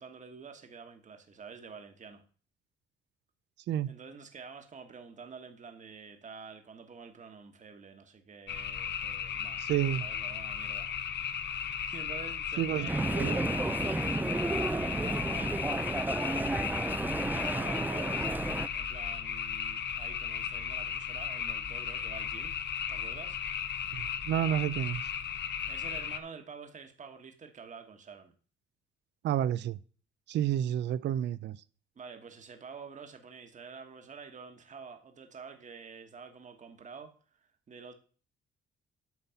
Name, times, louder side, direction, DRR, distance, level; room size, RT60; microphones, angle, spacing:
voice 1, 0.0-2.2 3.9-9.6 10.0-11.0 11.3-16.5 17.3-18.5 18.7-22.6 22.9-23.4 25.7-28.3 31.9-37.9, right 5 dB, 40° right, 1.4 m, -48 dB
sound 1, 8.5-26.2, left 8 dB, 60° left, 1.0 m, -35 dB
voice 2, 9.6-10.1 12.6-12.9 13.2-13.4 23.9-25.1 29.2-29.8 30.3-31.6, right 11 dB, 65° right, 0.5 m, -30 dB
sound 2, 12.9-18.7, right 2 dB, 10° right, 0.5 m, -32 dB
9.3 x 4.0 x 7.0 m
cardioid pair, 90°, 20 cm